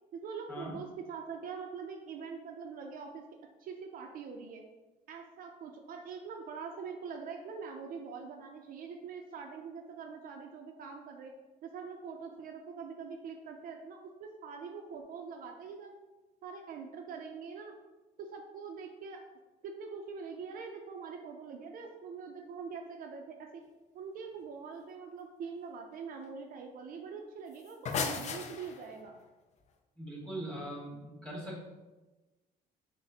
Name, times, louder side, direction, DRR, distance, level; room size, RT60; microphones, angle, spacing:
voice 1, 0.1-3.2 3.6-4.6 5.1-11.3 11.6-16.0 16.4-17.7 18.2-19.2 19.6-23.6 23.9-29.2, right 5 dB, 55° right, 2 dB, 0.4 m, -44 dB
sound 1, 27.5-29.1, left 5 dB, 45° left, 0.4 m, -35 dB
voice 2, 30.0-31.7, right 1 dB, 5° left, -4 dB, 1.5 m, -41 dB
6.2 x 2.1 x 2.7 m, 1.1 s
cardioid pair, 110°, 17 cm